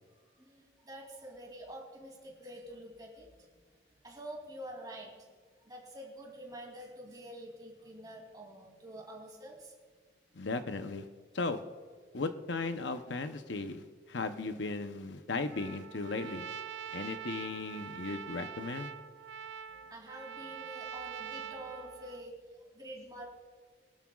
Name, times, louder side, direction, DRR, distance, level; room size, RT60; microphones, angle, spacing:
voice 1, 0.3-3.3 4.0-5.1 5.6-9.7 16.9-17.0 19.7-23.3, right 1 dB, 20° right, -1 dB, 2.8 m, -47 dB
voice 2, 10.3-11.1 11.3-11.6 12.1-16.4 16.9-18.9, left 3 dB, 85° left, 8 dB, 0.8 m, -36 dB
Trumpet, 15.5-22.3, right 8 dB, 90° right, 0.5 m, -44 dB
22.0 x 12.0 x 2.4 m, 1.5 s
head